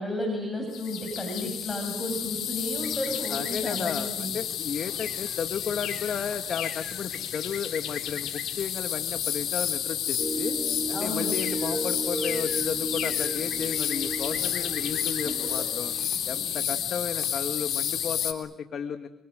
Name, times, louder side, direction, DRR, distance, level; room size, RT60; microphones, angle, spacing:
voice 1, 0.0-4.3 10.9-11.4 15.2-15.7, left 1 dB, 15° left, 2 dB, 6.8 m, -33 dB
sound 1, 0.7-18.3, left 10 dB, 75° left, 3.3 m, -31 dB
voice 2, 3.3-10.6 10.9-15.9 16.2-19.1, left 7 dB, 60° left, 8 dB, 1.6 m, -34 dB
sound 2, 10.2-16.1, right 2 dB, 10° right, 1.7 m, -35 dB
27.5 x 25.0 x 7.8 m, 0.94 s
cardioid pair, 90°, 0 cm